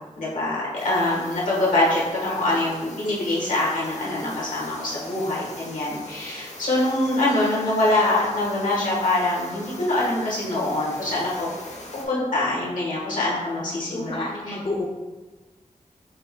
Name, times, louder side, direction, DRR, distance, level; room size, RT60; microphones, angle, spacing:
voice 1, 0.2-11.5 12.1-14.5, left 2 dB, 85° left, -6 dB, 1.5 m, -24 dB
sound 1, 0.8-12.1, left 2 dB, 60° left, 0.9 m, -41 dB
voice 2, 13.6-14.8, left 2 dB, 45° left, -1 dB, 0.5 m, -31 dB
5.4 x 2.2 x 3.7 m, 1.2 s
wide cardioid pair, 85°, 13 cm